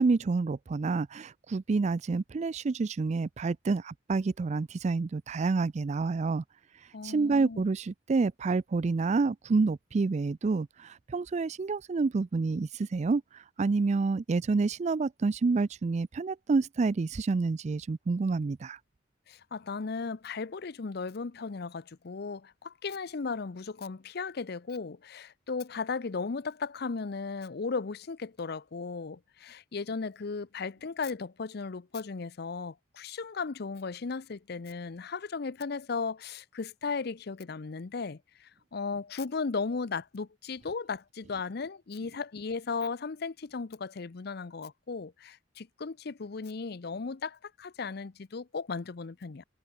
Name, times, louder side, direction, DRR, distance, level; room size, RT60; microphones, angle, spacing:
voice 1, 0.0-6.4 7.0-18.8, right 4 dB, 35° right, 0.4 m, -28 dB
voice 2, 6.9-7.6 19.3-49.4, left 4 dB, 55° left, 0.6 m, -36 dB
head